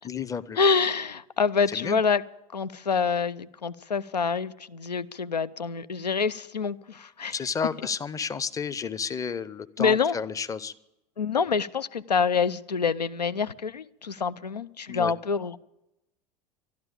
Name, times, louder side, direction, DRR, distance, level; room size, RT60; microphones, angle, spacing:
voice 1, 0.0-0.6 1.7-2.0 7.3-10.7 14.9-15.1, left 6 dB, 15° left, 15 dB, 0.6 m, -31 dB
voice 2, 0.6-2.2 2.5-7.3 9.8-10.2 11.2-15.6, left 5 dB, 85° left, 15 dB, 0.5 m, -26 dB
12.5 x 12.0 x 8.7 m, 0.89 s
figure-of-eight pair, 80°, 20 cm